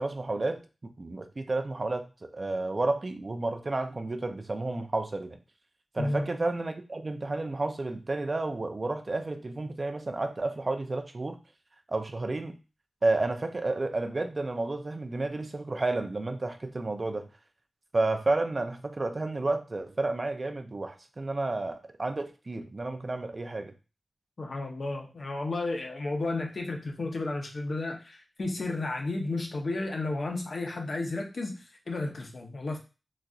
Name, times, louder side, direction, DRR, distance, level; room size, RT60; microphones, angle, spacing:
voice 1, 0.0-5.4 5.9-11.4 11.9-12.6 13.0-17.3 17.9-23.7, right 2 dB, 40° right, 7 dB, 0.4 m, -31 dB
voice 2, 6.0-6.3 24.4-32.8, left 2 dB, 55° left, 2 dB, 0.7 m, -32 dB
4.0 x 2.4 x 2.3 m, 0.31 s
wide cardioid pair, 100°, 0 cm